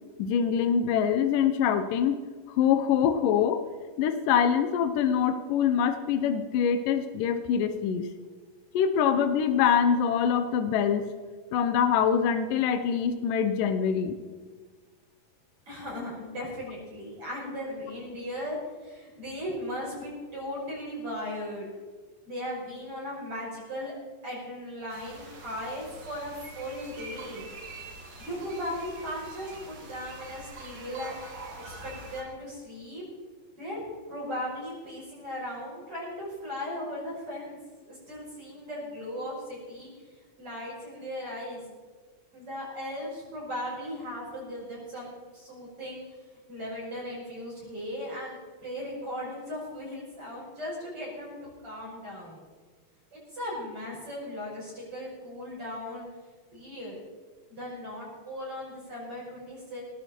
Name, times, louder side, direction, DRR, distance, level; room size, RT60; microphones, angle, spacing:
voice 1, 0.2-2.2 2.5-3.6 4.0-8.1 8.7-11.1 11.5-14.2, left 8 dB, 80° left, 8 dB, 2.5 m, -24 dB
voice 2, 15.7-18.5 18.8-21.7 22.3-23.9 24.2-27.5 28.2-33.0 33.6-33.8 34.1-37.6 37.9-39.9 40.4-41.6 42.3-46.0 46.5-52.4 53.1-56.1 56.5-57.0 57.5-59.8, equal, 40° right, -6 dB, 6.6 m, -37 dB
sound 1, 24.9-32.2, right 2 dB, 75° right, 4.3 m, -45 dB
18.5 x 15.0 x 4.4 m, 1.4 s
omnidirectional pair, 3.9 m